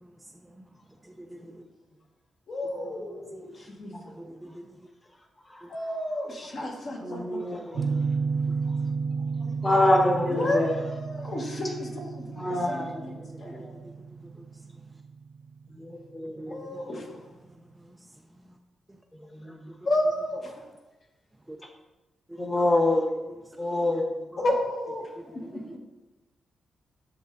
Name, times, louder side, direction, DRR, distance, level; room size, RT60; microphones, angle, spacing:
voice 1, 0.0-0.7 1.0-1.6 2.8-4.8 5.6-5.7 6.4-6.5 7.2-7.9 8.2-8.6 13.1-14.5 16.4-16.8 17.4-18.1 18.3-18.5 18.9-19.0 21.5-21.6 22.3-22.5 23.3-23.4 24.3-24.5 25.2-25.8, right 1 dB, 10° right, 4 dB, 0.5 m, -48 dB
voice 2, 2.5-3.9 5.7-7.4 9.4-9.5 10.3-12.0 12.7-12.8 13.4-13.6 16.5-17.2 19.8-20.6 24.4-25.6, left 1 dB, 55° left, 0 dB, 1.5 m, -31 dB
voice 3, 3.9-4.5 5.4-5.7 6.9-8.1 9.6-10.8 12.3-13.8 15.7-16.9 19.1-19.7 22.4-23.2 23.6-24.2, left 1 dB, 20° left, 2 dB, 1.2 m, -27 dB
sound 1, 7.7-16.5, right 5 dB, 65° right, 0.5 m, -32 dB
9.1 x 3.4 x 3.8 m, 1.1 s
cardioid pair, 90°, 0 cm